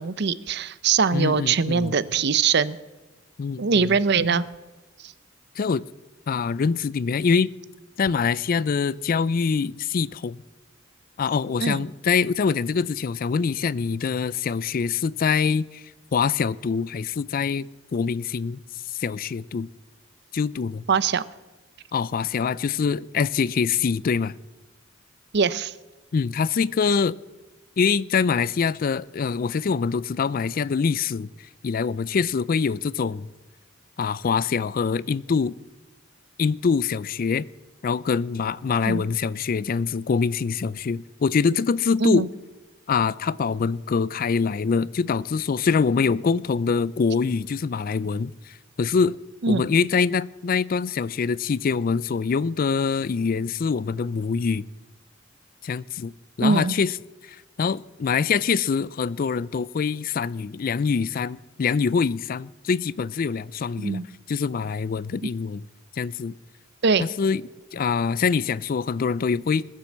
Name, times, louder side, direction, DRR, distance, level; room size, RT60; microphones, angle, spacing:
voice 1, 0.0-2.8 3.6-4.4 5.0-5.1 11.6-11.8 20.9-21.2 25.3-25.7 38.9-39.0 42.0-42.3 49.4-49.7 56.4-56.7 63.8-64.0 66.8-67.0, right 5 dB, 60° right, 0.6 m, -22 dB
voice 2, 1.1-1.9 3.4-4.4 5.6-5.8 6.3-7.5 8.0-10.4 11.2-15.8 16.1-18.6 18.9-19.7 20.3-20.8 21.9-24.3 26.1-27.1 27.8-31.3 31.6-33.3 34.0-35.5 36.4-37.5 37.8-42.3 42.9-49.2 49.5-54.6 55.6-56.1 56.4-57.0 57.2-64.0 64.3-65.6 66.0-66.3 67.0-67.4 67.7-69.7, left 5 dB, 45° left, 0.4 m, -24 dB
20.0 x 7.6 x 7.3 m
head